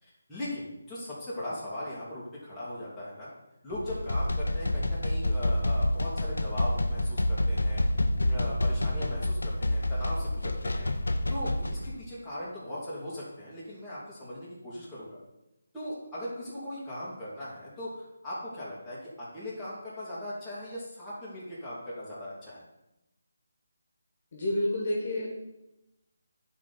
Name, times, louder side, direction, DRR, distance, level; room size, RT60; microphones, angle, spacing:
voice 1, 0.0-3.3 3.6-7.8 8.2-10.9 11.3-15.2 15.7-22.6, left 1 dB, 5° left, -12 dB, 2.4 m, -39 dB
sound 1, 3.7-11.9, left 1 dB, 85° left, 0.7 m, -28 dB
voice 2, 24.3-25.3, left 1 dB, 45° left, -1 dB, 1.7 m, -29 dB
9.8 x 4.1 x 4.1 m, 0.92 s
figure-of-eight pair, 160°, 0 cm